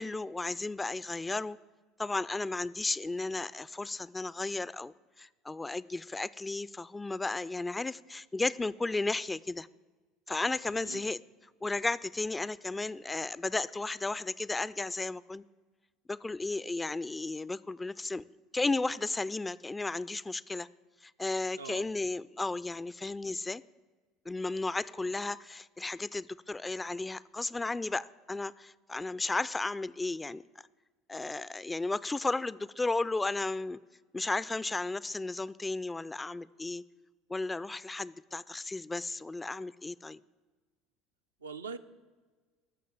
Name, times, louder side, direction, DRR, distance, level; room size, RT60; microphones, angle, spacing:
voice 1, 0.0-1.6 2.0-9.7 10.3-11.2 11.6-15.4 16.1-18.2 18.5-20.7 21.0-23.6 24.3-30.4 31.1-33.8 34.1-36.8 37.3-40.2, left 3 dB, 15° left, 19 dB, 0.3 m, -34 dB
voice 2, 21.5-21.9 41.4-41.8, right 5 dB, 80° right, 7 dB, 0.5 m, -42 dB
13.0 x 6.4 x 8.6 m, 1.4 s
figure-of-eight pair, 65°, 0 cm